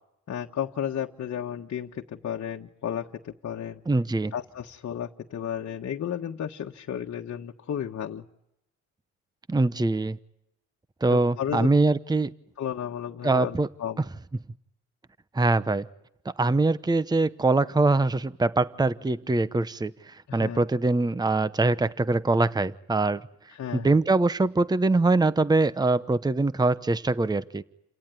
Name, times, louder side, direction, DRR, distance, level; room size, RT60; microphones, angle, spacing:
voice 1, 0.3-3.8 4.3-8.2 11.1-11.7 12.6-14.0 20.3-20.6 23.5-24.0, left 9 dB, 55° left, 1 dB, 1.5 m, -33 dB
voice 2, 3.9-4.3 9.5-10.2 11.0-12.3 13.2-13.7 15.3-15.9 16.2-23.2 23.7-27.6, right 3 dB, 15° right, 15 dB, 0.9 m, -23 dB
29.5 x 17.5 x 9.6 m, 0.83 s
cardioid pair, 80°, 31 cm